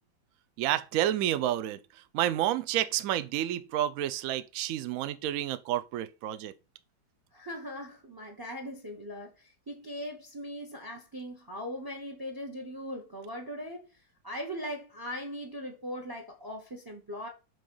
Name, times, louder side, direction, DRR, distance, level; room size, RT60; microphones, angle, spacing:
voice 1, 0.6-1.8 2.1-6.5, right 12 dB, 75° right, 0.8 m, -29 dB
voice 2, 7.3-14.0 14.2-17.3, equal, 25° right, 0.4 m, -40 dB
7.7 x 3.2 x 5.4 m
omnidirectional pair, 2.1 m